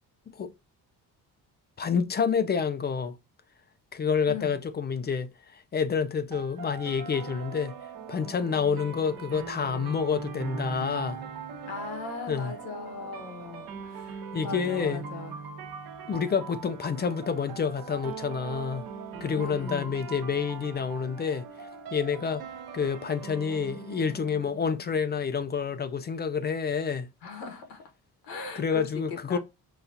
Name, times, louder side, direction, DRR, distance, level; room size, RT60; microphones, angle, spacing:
voice 1, 1.8-3.2 3.9-7.7 8.1-11.2 12.3-12.5 14.3-15.0 16.1-18.8 19.2-22.5 22.7-27.1 28.6-29.4, left 6 dB, 30° left, 0.4 m, -28 dB
voice 2, 4.3-4.6 11.7-15.3 19.3-19.9 27.2-27.9 28.2-29.4, left 4 dB, 85° left, 1.2 m, -39 dB
sound 1, 6.3-25.3, right 6 dB, 70° right, 1.0 m, -41 dB
5.6 x 2.3 x 2.6 m
cardioid pair, 130°, 38 cm